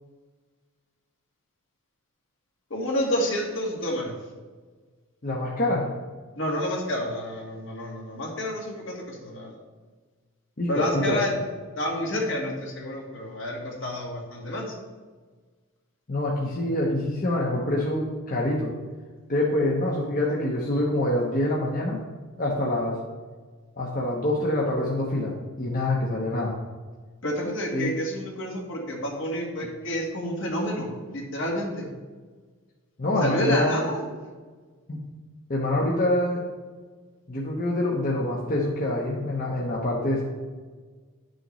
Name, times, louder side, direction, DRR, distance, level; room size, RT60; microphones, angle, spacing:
voice 1, 2.7-4.1 6.4-9.6 10.7-11.3 11.8-14.8 27.2-31.9 33.2-34.0, equal, 60° left, -1 dB, 1.7 m, -29 dB
voice 2, 5.2-5.9 10.6-11.2 16.1-18.7 19.3-22.0 22.4-23.0 23.8-26.5 27.7-27.9 33.0-33.8 34.9-35.0 35.5-36.5 37.3-40.2, left 1 dB, 40° left, -4 dB, 1.0 m, -25 dB
11.0 x 6.5 x 3.1 m, 1.4 s
head